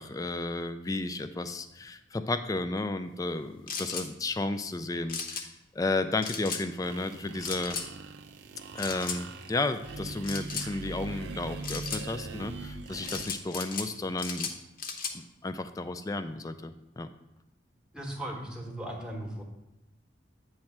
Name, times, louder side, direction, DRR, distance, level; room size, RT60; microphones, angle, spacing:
voice 1, 0.0-7.8 8.7-14.5 15.1-17.1, left 2 dB, 20° left, 10 dB, 0.3 m, -33 dB
sound 1, 3.7-4.1 5.1-5.5 6.2-6.6 7.4-7.9 8.8-9.2 10.2-10.7 11.6-12.0 13.0-13.9 14.2-15.2, left 5 dB, 45° left, 0.7 m, -35 dB
sound 2, 6.8-13.2, right 3 dB, 65° right, 0.5 m, -41 dB
voice 2, 17.9-19.4, right 1 dB, 5° right, 0 dB, 0.9 m, -37 dB
8.7 x 3.2 x 5.8 m, 0.94 s
head